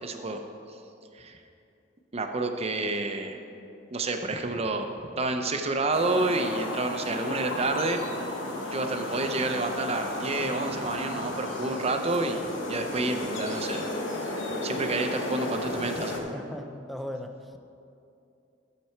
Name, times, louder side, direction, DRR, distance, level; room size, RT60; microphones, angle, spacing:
voice 1, 0.0-0.4 1.1-1.4 2.1-3.4 3.9-4.9 5.2-8.0 8.7-13.9 14.6-16.2, right 2 dB, 35° right, 5 dB, 0.7 m, -29 dB
sound 1, 5.9-16.2, left 1 dB, 85° left, 1.3 m, -34 dB
voice 2, 16.3-17.5, equal, ahead, 6 dB, 0.5 m, -38 dB
12.5 x 7.0 x 4.4 m, 2.6 s
head